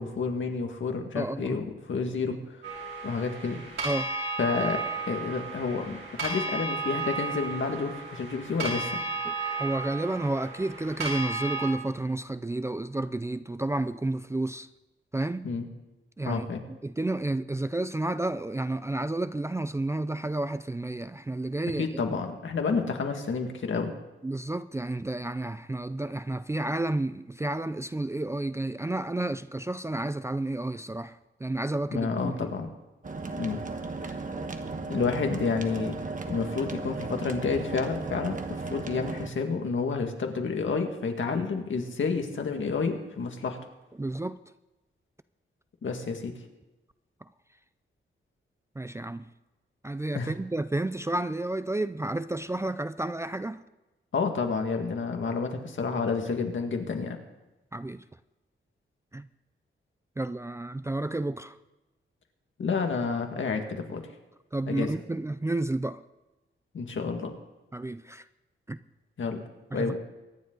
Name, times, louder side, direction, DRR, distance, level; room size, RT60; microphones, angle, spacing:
voice 1, 0.0-2.4 3.0-3.6 4.4-8.9 15.4-15.7 16.2-16.6 21.8-23.9 31.9-32.7 33.4-33.6 34.9-36.0 36.3-43.6 45.8-46.4 50.1-50.3 54.1-57.2 62.6-64.1 64.7-64.9 66.7-67.3 69.2-69.4 69.7-70.0, left 4 dB, 65° left, 2.0 m, -30 dB
voice 2, 1.2-1.6 3.8-4.1 9.3-9.4 9.6-14.7 15.1-15.5 16.2-16.5 16.8-22.0 24.2-32.5 44.0-44.4 48.8-49.3 49.8-53.6 57.7-58.0 59.1-59.3 60.2-61.6 64.5-66.0 67.7-68.2 68.7-68.8 69.7-70.0, right 2 dB, 15° right, 0.4 m, -31 dB
sound 1, 2.6-11.7, right 3 dB, 90° right, 6.2 m, -34 dB
sound 2, 33.0-39.3, right 3 dB, 40° right, 1.2 m, -36 dB
24.0 x 10.5 x 3.9 m
wide cardioid pair, 150°, 21 cm